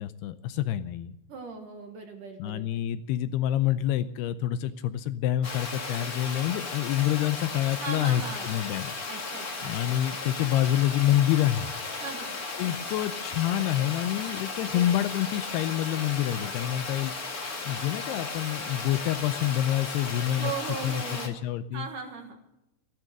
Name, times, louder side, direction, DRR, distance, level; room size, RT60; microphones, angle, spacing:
voice 1, 0.0-1.2 2.4-8.9 9.6-11.7 12.6-17.1 17.7-20.5 20.8-21.9, left 12 dB, 80° left, 12 dB, 2.4 m, -27 dB
voice 2, 1.3-2.8 7.8-8.5 9.1-9.8 12.0-12.4 14.6-14.8 20.4-21.4 21.7-22.4, right 5 dB, 60° right, 3 dB, 2.7 m, -38 dB
Water, 5.4-21.3, left 3 dB, 45° left, 1.1 m, -35 dB
16.5 x 12.0 x 6.6 m, 0.89 s
omnidirectional pair, 5.2 m